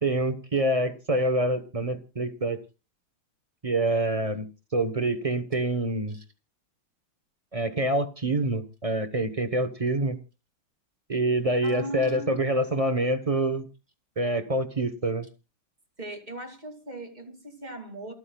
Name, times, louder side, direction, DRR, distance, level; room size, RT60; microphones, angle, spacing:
voice 1, 0.0-2.6 3.6-4.5 4.7-6.2 7.5-10.2 11.1-13.7 14.2-15.3, right 1 dB, 35° right, 9 dB, 0.5 m, -26 dB
voice 2, 11.6-12.3 16.0-18.1, right 1 dB, 20° right, 4 dB, 2.5 m, -39 dB
28.0 x 9.7 x 2.3 m, 0.30 s
omnidirectional pair, 2.4 m